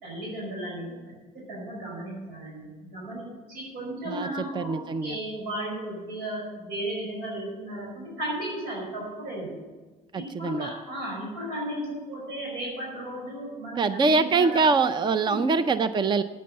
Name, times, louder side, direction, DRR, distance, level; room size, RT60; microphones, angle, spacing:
voice 1, 0.0-0.9 1.3-9.6 10.2-14.6 15.2-15.5, right 1 dB, 90° right, -3 dB, 5.3 m, -35 dB
voice 2, 4.5-5.2 10.1-10.7 13.8-16.2, right 4 dB, 25° right, 12 dB, 0.5 m, -24 dB
9.5 x 9.4 x 7.7 m, 1.3 s
cardioid pair, 110°, 17 cm